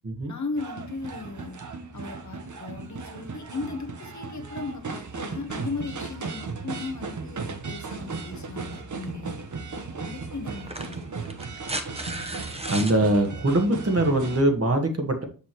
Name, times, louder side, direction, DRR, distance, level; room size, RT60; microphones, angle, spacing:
voice 1, 0.3-1.6 1.9-9.5 9.7-11.0, left 3 dB, 55° left, 5 dB, 1.3 m, -37 dB
sound 1, 0.6-14.4, right 4 dB, 60° right, 1.1 m, -36 dB
sound 2, 9.4-9.5 10.5-13.0 14.5-14.6, right 1 dB, 20° right, 1.2 m, -35 dB
voice 2, 12.6-15.2, right 1 dB, 45° right, 5 dB, 1.6 m, -22 dB
7.3 x 5.6 x 3.0 m, 0.37 s
cardioid pair, 55°, 34 cm